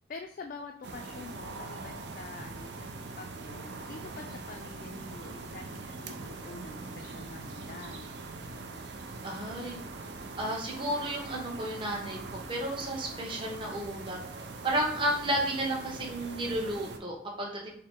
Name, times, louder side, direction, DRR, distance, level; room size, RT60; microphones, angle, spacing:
voice 1, 0.1-8.2, left 4 dB, 45° left, 3 dB, 0.3 m, -46 dB
sound 1, 0.8-17.0, right 3 dB, 65° right, 0.5 m, -42 dB
voice 2, 9.2-9.8 10.4-12.2 12.5-14.2 14.6-17.7, right 1 dB, 25° right, -2 dB, 0.9 m, -32 dB
5.5 x 2.0 x 3.6 m, 0.64 s
head